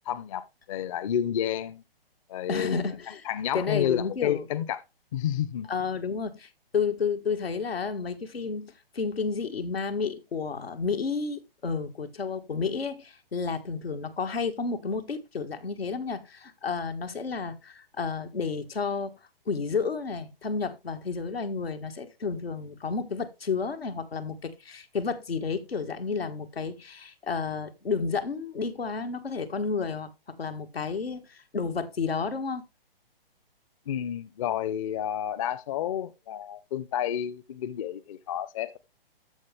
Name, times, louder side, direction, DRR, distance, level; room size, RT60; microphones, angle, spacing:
voice 1, 0.1-1.8 2.3-2.8 3.2-4.8 5.1-5.7 33.9-38.8, left 10 dB, 35° left, 0.6 m, -30 dB
voice 2, 2.5-3.2 3.5-4.5 5.7-19.1 19.5-32.6, left 5 dB, 90° left, 1.7 m, -31 dB
13.5 x 5.3 x 3.4 m
hypercardioid pair, 145°, 29 cm